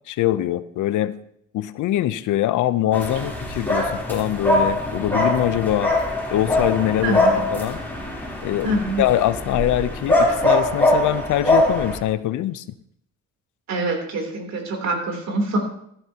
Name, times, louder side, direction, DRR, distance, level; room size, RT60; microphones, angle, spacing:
voice 1, 0.1-1.1 1.5-5.9 6.3-7.2 7.5-7.8 8.4-12.6, left 13 dB, 80° left, 15 dB, 0.7 m, -23 dB
sound 1, 2.9-12.0, left 1 dB, 5° left, 3.4 m, -22 dB
voice 2, 7.0-7.4 8.6-9.0 13.7-15.6, right 2 dB, 65° right, 2 dB, 3.3 m, -25 dB
14.0 x 11.5 x 2.9 m, 0.70 s
cardioid pair, 90°, 30 cm